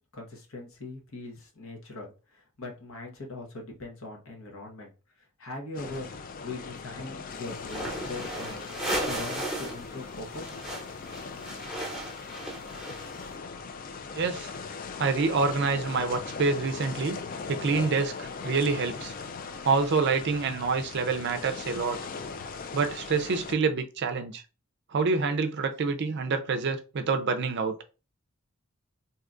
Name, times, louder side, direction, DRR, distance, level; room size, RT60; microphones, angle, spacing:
voice 1, 0.1-4.9 5.4-6.1 6.4-8.6 9.0-10.6 11.4-11.6, left 2 dB, 70° left, 1.0 m, -41 dB
sound 1, 5.7-23.5, left 5 dB, 40° left, 0.3 m, -39 dB
sound 2, 7.6-9.8 10.1-13.3, right 1 dB, ahead, 0.9 m, -35 dB
voice 2, 14.1-14.5 15.0-17.2 17.5-19.1 19.6-22.0 22.7-24.4 24.9-27.7, right 4 dB, 50° right, 0.4 m, -27 dB
2.7 x 2.3 x 3.7 m
head